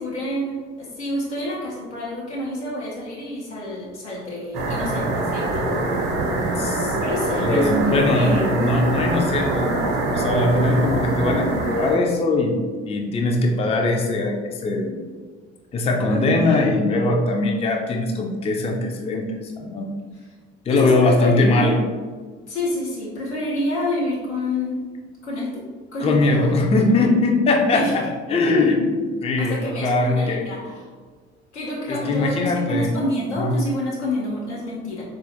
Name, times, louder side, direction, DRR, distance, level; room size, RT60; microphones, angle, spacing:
voice 1, 0.0-5.7 7.0-8.4 16.1-16.7 20.1-20.2 20.7-21.8 22.5-24.8 25.2-25.6 25.9-26.5 26.9-27.1 27.7-28.0 29.4-30.9 31.5-35.0, left 1 dB, 85° left, -6 dB, 0.8 m, -28 dB
sound 1, 4.5-12.0, right 2 dB, 50° right, 0.8 m, -24 dB
voice 2, 6.6-7.0 7.3-12.5 12.9-15.0 15.7-19.3 19.6-19.9 20.7-21.8 26.0-29.0 29.2-30.5 31.9-32.9 33.2-33.5, left 2 dB, 20° left, 1 dB, 0.4 m, -21 dB
4.1 x 2.4 x 2.7 m, 1.5 s
figure-of-eight pair, 50°, 34 cm